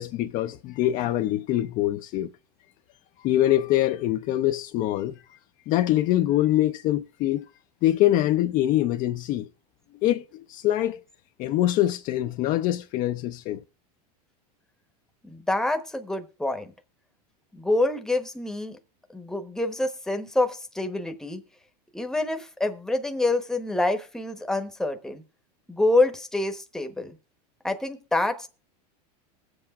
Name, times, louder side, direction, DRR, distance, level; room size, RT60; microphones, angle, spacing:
voice 1, 0.0-2.3 3.2-5.2 5.7-7.4 7.8-9.5 10.0-11.0 11.4-13.6, left 14 dB, 40° left, 0.5 m, -24 dB
voice 2, 15.2-16.7 17.5-18.8 19.1-21.4 21.9-25.2 25.7-27.2 27.6-28.5, left 2 dB, ahead, 0.9 m, -26 dB
20.5 x 7.8 x 2.3 m
supercardioid pair, 125°, 20 cm